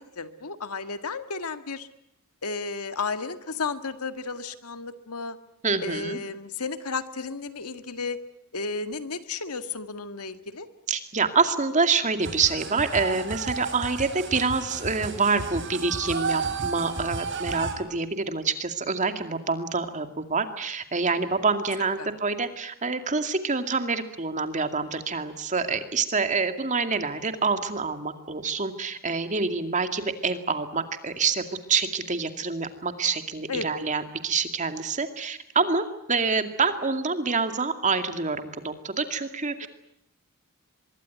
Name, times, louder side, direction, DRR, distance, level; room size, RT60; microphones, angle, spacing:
voice 1, 0.2-1.9 2.4-5.4 5.8-8.2 8.5-10.7 22.0-22.1 33.5-33.8, left 4 dB, 85° left, 10 dB, 1.9 m, -33 dB
voice 2, 5.6-6.2 10.9-39.7, right 4 dB, 35° right, 8 dB, 2.3 m, -27 dB
sound 1, 12.2-17.8, right 4 dB, 55° right, 3.4 m, -32 dB
24.5 x 23.0 x 9.3 m, 0.77 s
head